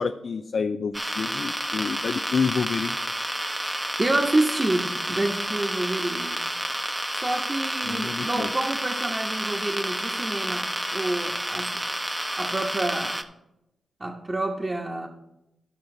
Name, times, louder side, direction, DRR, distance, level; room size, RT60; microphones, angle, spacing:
voice 1, 0.0-3.0 7.8-8.5, left 5 dB, 65° left, 9 dB, 0.4 m, -28 dB
sound 1, 0.9-13.2, right 1 dB, 10° right, 0.8 m, -30 dB
voice 2, 4.0-6.4 7.2-11.7 12.4-13.2 14.0-15.1, right 2 dB, 35° right, -3 dB, 1.2 m, -28 dB
13.5 x 5.7 x 3.9 m, 0.89 s
supercardioid pair, 40°, 0 cm